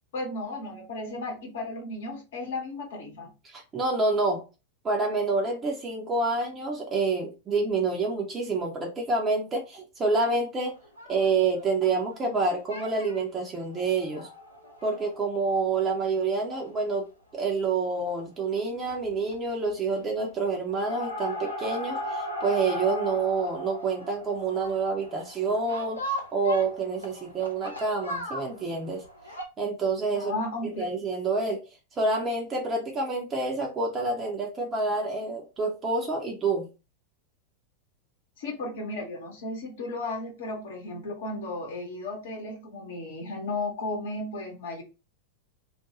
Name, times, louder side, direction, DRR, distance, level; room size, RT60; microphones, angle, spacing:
voice 1, 0.1-3.3 30.1-30.9 38.4-44.8, left 2 dB, 55° left, 0.9 m, -34 dB
voice 2, 3.4-4.4 4.8-10.8 11.1-14.3 14.8-17.1 17.3-29.0 29.6-30.3 30.8-31.6 32.0-36.7, right 3 dB, 25° right, 0.6 m, -28 dB
sound 1, 10.8-12.4 12.7-13.2 13.7-15.8 16.2-16.3 16.5-16.6 16.9-17.0 18.4-18.6 18.9-19.4 19.6-20.2 20.5-29.4, equal, 85° left, 0.7 m, -37 dB
2.4 x 2.2 x 2.8 m
figure-of-eight pair, 90°, 0 cm